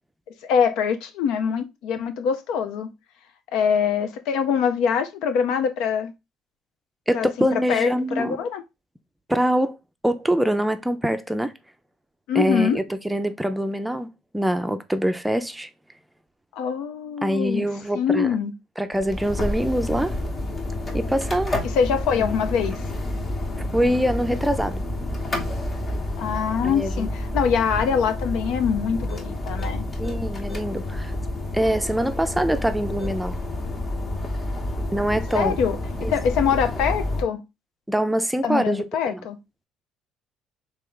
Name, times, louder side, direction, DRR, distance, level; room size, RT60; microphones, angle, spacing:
voice 1, 0.4-2.9 3.5-6.1 7.1-8.6 12.3-12.8 16.6-17.7 17.9-18.5 21.6-22.8 26.2-29.8 35.3-37.4 38.4-39.4, left 7 dB, 75° left, 0.5 m, -24 dB
voice 2, 7.1-8.4 9.3-9.8 10.0-11.5 12.3-14.1 14.3-15.7 17.2-18.3 18.8-20.1 20.9-21.6 22.2-22.3 23.7-24.8 26.6-27.1 30.0-31.1 31.5-33.4 34.9-35.6 36.0-36.1 37.9-39.2, equal, 5° right, 0.5 m, -24 dB
sound 1, 18.9-37.2, left 1 dB, 35° left, 1.0 m, -29 dB
3.1 x 3.0 x 3.7 m
supercardioid pair, 70°, 0 cm